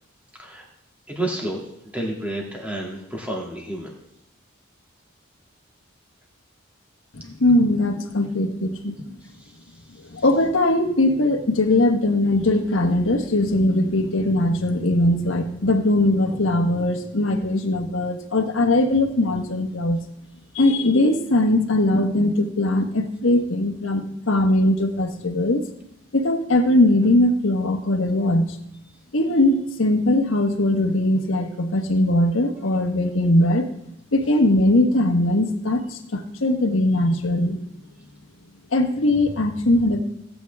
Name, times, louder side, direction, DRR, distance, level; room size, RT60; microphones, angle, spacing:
voice 1, 1.1-1.6 1.9-3.9 9.4-9.5, right 1 dB, 5° right, -2 dB, 2.2 m, -30 dB
voice 2, 7.2-9.0 10.1-20.0 20.5-25.6 26.1-28.6 29.1-33.7 34.1-37.6 38.7-40.0, left 1 dB, 75° left, 6 dB, 1.2 m, -20 dB
17.0 x 8.6 x 3.5 m, 0.79 s
head